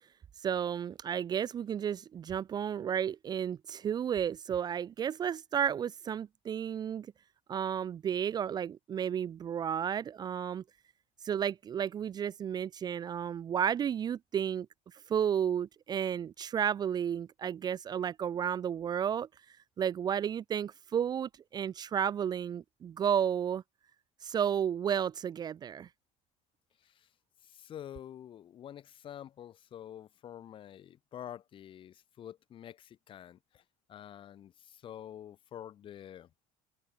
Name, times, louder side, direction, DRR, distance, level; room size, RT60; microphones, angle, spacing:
voice 1, 0.4-7.1 7.5-10.6 11.2-14.7 15.1-19.3 19.8-23.6 24.2-25.9, right 8 dB, 30° right, 0.9 m, -32 dB
voice 2, 27.4-33.6 33.9-36.3, left 10 dB, 35° left, 3.5 m, -48 dB
cardioid pair, 155°, 15 cm